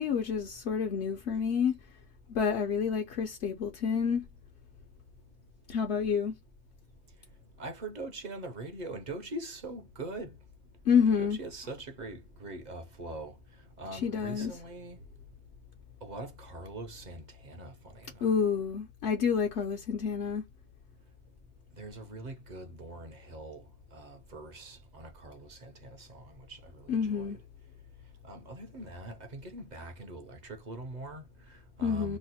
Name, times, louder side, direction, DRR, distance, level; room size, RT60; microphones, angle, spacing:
voice 1, 0.0-1.8 2.3-4.3 5.7-6.3 10.8-11.4 13.9-14.5 18.2-20.4 26.9-27.4 31.8-32.2, left 6 dB, 75° left, 1.0 m, -28 dB
voice 2, 7.6-10.4 11.2-13.3 13.8-15.0 16.0-18.3 21.8-23.6 23.9-27.4 28.2-32.2, right 2 dB, 45° right, 0.7 m, -43 dB
3.1 x 2.1 x 4.1 m
omnidirectional pair, 1.2 m